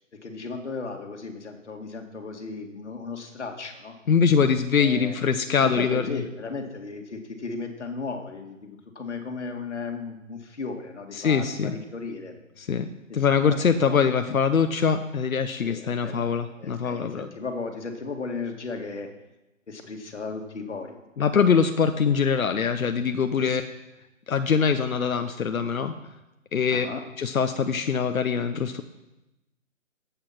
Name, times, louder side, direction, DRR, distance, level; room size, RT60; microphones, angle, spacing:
voice 1, 0.2-4.0 4.8-5.2 5.6-12.4 13.1-13.3 13.8-14.1 15.6-16.2 16.6-19.1 19.7-21.0 23.4-23.6 26.7-27.0, left 4 dB, 55° left, 5 dB, 2.1 m, -35 dB
voice 2, 4.1-6.2 11.1-11.8 12.6-12.9 13.1-17.3 21.2-23.6 24.3-25.9 26.5-26.9 27.2-28.8, left 6 dB, 90° left, 8 dB, 1.0 m, -23 dB
13.0 x 8.8 x 5.9 m, 0.98 s
hypercardioid pair, 180°, 40 cm